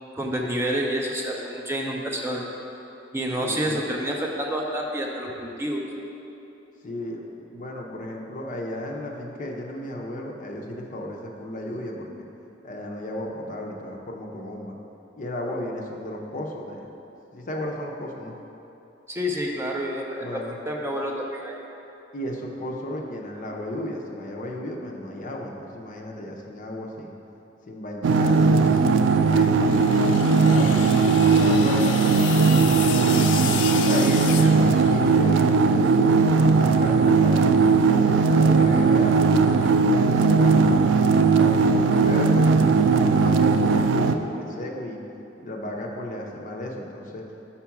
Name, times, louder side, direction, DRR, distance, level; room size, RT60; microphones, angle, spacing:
voice 1, 0.1-2.4 3.1-5.8 19.1-20.4 20.7-21.6 33.9-34.2, equal, 15° right, -1 dB, 0.5 m, -28 dB
voice 2, 3.4-3.8 6.8-12.1 12.6-14.8 15.2-16.9 17.3-18.3 20.2-20.6 22.1-27.1 27.7-29.6 30.0-33.3 33.7-37.4 38.0-40.8 41.2-45.0 45.4-47.2, left 1 dB, 45° left, 0 dB, 0.7 m, -34 dB
sound 1, 28.0-44.2, right 4 dB, 80° right, 0.3 m, -18 dB
sound 2, 29.5-35.4, left 8 dB, 85° left, 0.3 m, -32 dB
5.8 x 4.6 x 5.8 m, 2.9 s
head